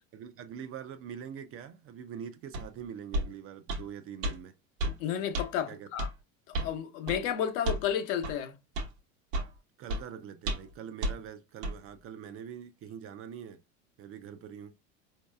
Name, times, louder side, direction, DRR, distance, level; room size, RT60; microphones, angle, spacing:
voice 1, 0.0-4.6 5.7-5.9 9.8-13.6 14.0-14.7, right 8 dB, 35° right, 0.4 m, -44 dB
sound 1, 2.5-2.7 3.1-3.3 3.7-3.8 4.2-4.4 4.8-5.0 5.3-5.5 6.0-6.1 6.5-6.7 7.1-7.2 7.6-7.9 8.2-8.4 8.8-8.9 9.3-9.5 9.9-10.0 10.5-10.7 11.0-11.2 11.6-11.8, right 1 dB, 75° right, 1.0 m, -31 dB
voice 2, 5.0-6.1 6.5-8.5, left 9 dB, 65° left, 0.9 m, -32 dB
4.4 x 2.8 x 2.2 m
hypercardioid pair, 90°, 40 cm